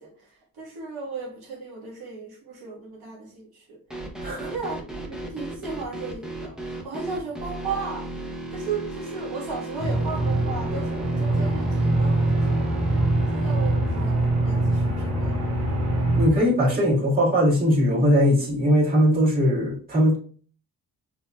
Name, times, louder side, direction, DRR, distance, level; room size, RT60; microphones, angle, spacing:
voice 1, 0.0-3.8 4.3-8.1 8.5-12.7 13.3-15.7, right 4 dB, 85° right, 1.4 m, -35 dB
sound 1, 3.9-16.2, right 1 dB, ahead, 0.7 m, -35 dB
voice 2, 4.2-4.5 16.2-20.2, equal, 25° right, 1.8 m, -20 dB
Aircraft, 9.8-16.3, right 2 dB, 45° right, 1.1 m, -23 dB
5.2 x 3.1 x 2.3 m
wide cardioid pair, 130°, 36 cm